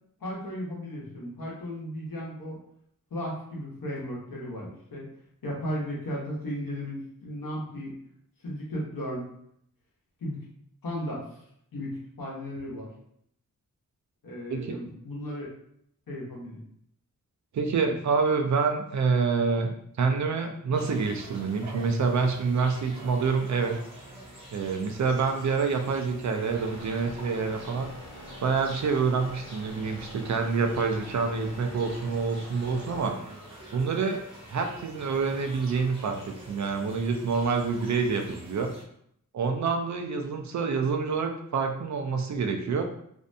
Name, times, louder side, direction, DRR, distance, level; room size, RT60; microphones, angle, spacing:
voice 1, 0.2-2.6 3.1-5.1 5.4-7.9 8.4-9.3 10.2-10.4 10.8-11.2 11.7-12.9 14.2-15.5 16.1-16.6 17.8-17.9, equal, 80° left, -5 dB, 0.9 m, -35 dB
voice 2, 17.5-19.7 20.0-23.8 24.5-27.9 28.4-33.2 33.7-34.2 34.5-36.2 36.5-38.7 39.3-42.8, right 5 dB, 60° right, 4 dB, 0.4 m, -27 dB
sound 1, 20.7-38.8, right 1 dB, 15° right, 0.7 m, -47 dB
sound 2, 26.5-33.0, left 1 dB, 50° left, 0.5 m, -45 dB
2.6 x 2.2 x 2.6 m, 0.70 s
wide cardioid pair, 130°, 34 cm